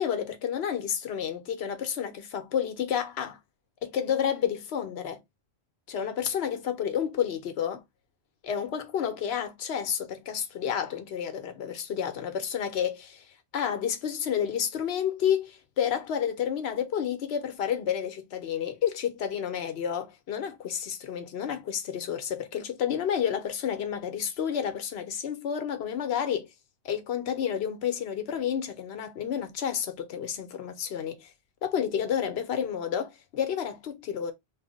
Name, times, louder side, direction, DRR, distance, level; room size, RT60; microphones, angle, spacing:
voice 1, 0.0-3.4 3.8-5.2 5.9-7.8 8.4-26.5 26.8-31.3 31.6-34.3, left 8 dB, 80° left, 1.0 m, -30 dB
3.0 x 2.0 x 3.9 m
omnidirectional pair, 1.1 m